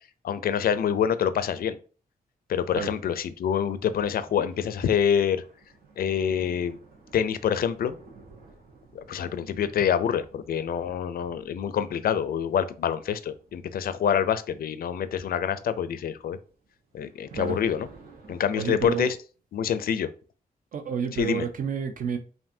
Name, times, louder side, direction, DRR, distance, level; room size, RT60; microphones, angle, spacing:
voice 1, 0.2-1.8 2.5-5.4 6.0-6.8 7.1-8.0 8.9-16.4 16.9-17.9 18.3-19.2 19.5-20.1 21.2-21.5, left 8 dB, 75° left, 0.4 m, -26 dB
sound 1, 3.2-19.1, right 4 dB, 85° right, 1.1 m, -53 dB
voice 2, 18.6-19.1 20.7-22.2, right 7 dB, 60° right, 0.6 m, -30 dB
5.4 x 2.6 x 2.6 m
wide cardioid pair, 160°, 15 cm